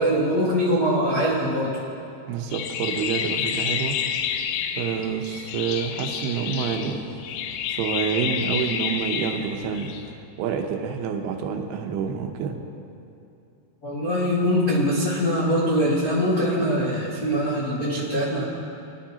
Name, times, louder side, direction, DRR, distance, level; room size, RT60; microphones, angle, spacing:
voice 1, 0.0-1.8 13.8-18.4, equal, 45° left, -9 dB, 1.1 m, -23 dB
voice 2, 2.3-4.0 4.8-7.0 7.7-9.9 10.4-12.6, right 7 dB, 80° right, 3 dB, 2.8 m, -28 dB
sound 1, 2.5-10.1, left 8 dB, 85° left, 2.1 m, -29 dB
22.0 x 11.5 x 2.9 m, 2.7 s
omnidirectional pair, 4.7 m